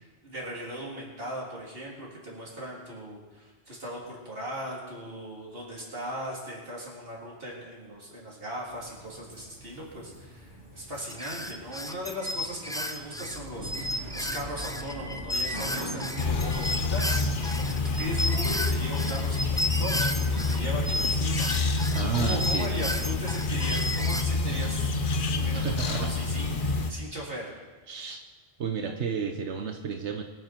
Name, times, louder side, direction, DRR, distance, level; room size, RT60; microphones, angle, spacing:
voice 1, 0.0-24.9 25.3-27.6, equal, 55° right, -4 dB, 3.9 m, -38 dB
sound 1, 8.7-22.9, equal, 85° left, 3.4 m, -44 dB
sound 2, 11.1-20.6 20.8-24.2, left 1 dB, 5° left, 0.5 m, -33 dB
sound 3, 16.2-26.9, left 3 dB, 50° left, 1.0 m, -28 dB
voice 2, 21.9-22.7 25.5-26.1 26.6-26.7 27.9-28.2 28.6-30.2, right 6 dB, 80° right, 5 dB, 1.3 m, -31 dB
23.5 x 9.7 x 4.5 m, 1.3 s
omnidirectional pair, 1.2 m